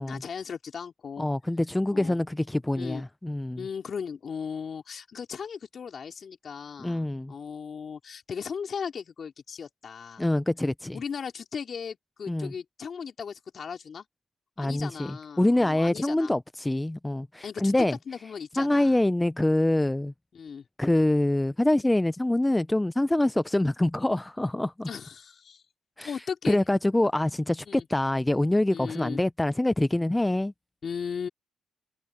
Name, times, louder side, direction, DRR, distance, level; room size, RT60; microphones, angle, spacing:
voice 1, 0.0-1.3 1.9-2.2 2.8-3.0 3.6-10.3 10.9-14.1 14.6-16.3 17.4-17.7 18.1-19.0 20.3-20.6 24.9-25.6 26.0-26.6 27.7-27.9 28.7-29.2 30.8-31.3, left 6 dB, 50° left, 3.6 m, -37 dB
voice 2, 1.2-3.6 6.8-7.3 10.2-11.0 12.3-12.5 14.6-18.0 18.6-20.1 20.8-24.9 26.0-26.2 26.5-30.5, left 1 dB, 10° left, 0.5 m, -25 dB
cardioid pair, 90°, 0 cm